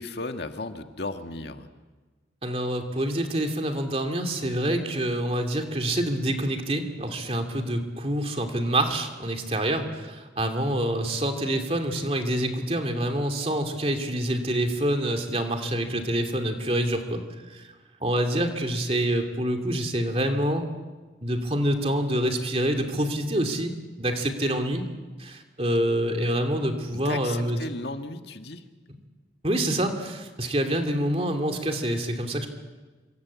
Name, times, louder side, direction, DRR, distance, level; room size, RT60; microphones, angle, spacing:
voice 1, 0.0-1.7 26.9-28.6, left 2 dB, 65° left, 6 dB, 1.7 m, -35 dB
voice 2, 2.4-17.2 17.5-17.6 18.0-20.7 21.2-23.7 24.0-24.8 25.2-27.6 29.4-32.5, right 1 dB, 30° right, 5 dB, 2.8 m, -26 dB
26.5 x 24.5 x 8.4 m, 1.3 s
head